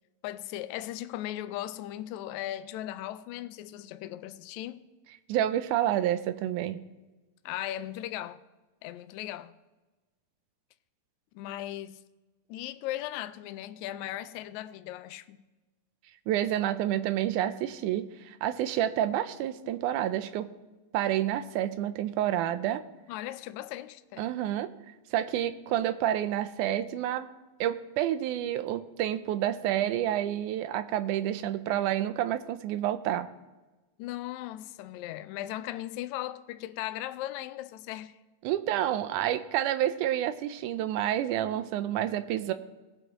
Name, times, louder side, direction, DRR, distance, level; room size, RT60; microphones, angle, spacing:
voice 1, 0.2-4.8 7.5-8.4 8.8-9.5 11.3-12.0 12.5-15.4 23.1-24.3 34.0-38.2, left 13 dB, 80° left, 1.8 m, -37 dB
voice 2, 5.3-6.8 16.3-20.5 20.9-22.8 24.2-24.7 25.1-27.3 27.6-33.3 38.4-42.5, right 12 dB, 85° right, 2.1 m, -29 dB
19.5 x 7.9 x 3.0 m
omnidirectional pair, 3.5 m